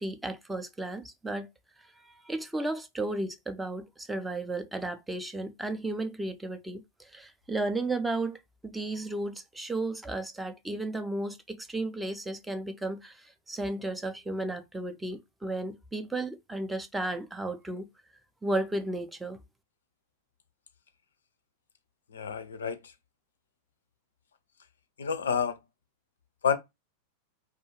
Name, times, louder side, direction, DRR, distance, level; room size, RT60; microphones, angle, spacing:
voice 1, 0.0-1.5 2.0-17.9 18.4-19.4, right 2 dB, 5° right, 0.4 m, -34 dB
voice 2, 22.1-22.8 25.0-25.6 26.4-26.6, left 7 dB, 70° left, 0.3 m, -28 dB
2.2 x 2.2 x 3.0 m
figure-of-eight pair, 90°, 0 cm